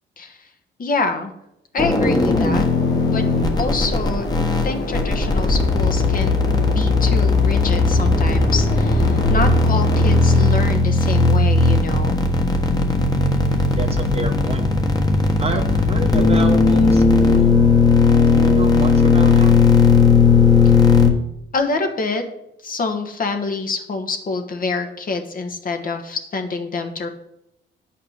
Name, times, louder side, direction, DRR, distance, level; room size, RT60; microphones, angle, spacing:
voice 1, 0.2-0.5 0.8-1.3 1.7-2.6 3.1-3.2 3.6-4.3 4.6-6.4 6.6-12.2 21.5-22.2 22.6-27.1, left 3 dB, 45° left, 5 dB, 1.4 m, -26 dB
sound 1, 1.8-21.1, left 4 dB, 20° left, 1.4 m, -16 dB
sound 2, 2.2-10.5, left 3 dB, 65° left, 1.6 m, -29 dB
voice 2, 13.7-14.7 15.4-17.6 18.3-19.6, right 3 dB, 30° right, 5 dB, 1.3 m, -28 dB
8.7 x 5.8 x 6.6 m, 0.83 s
cardioid pair, 90°, 20 cm